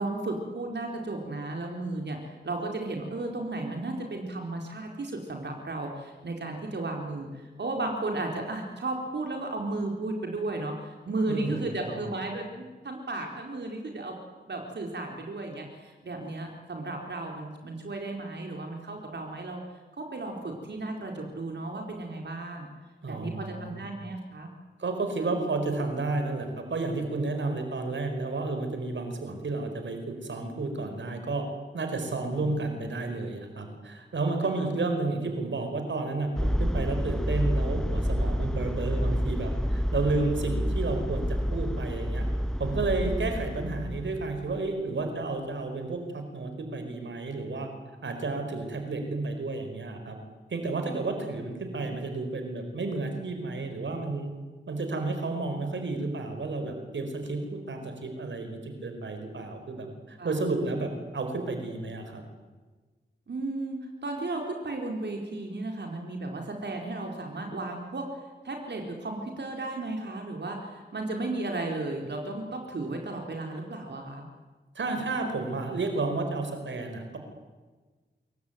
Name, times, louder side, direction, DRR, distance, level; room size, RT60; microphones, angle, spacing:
voice 1, 0.0-14.2 14.5-19.6 20.0-22.7 23.1-24.5 34.6-34.7 60.2-60.4 63.3-68.0 68.4-74.3, right 2 dB, 70° right, 2 dB, 4.4 m, -34 dB
voice 2, 11.3-12.0 23.0-23.8 24.8-31.4 31.7-42.3 42.6-47.7 48.0-50.2 50.5-54.3 54.7-62.2 74.7-77.2, right 3 dB, 90° right, 6 dB, 5.1 m, -31 dB
sound 1, 36.4-44.7, equal, 5° left, 1.0 m, -29 dB
27.5 x 23.0 x 9.4 m, 1.3 s
wide cardioid pair, 80°, 19 cm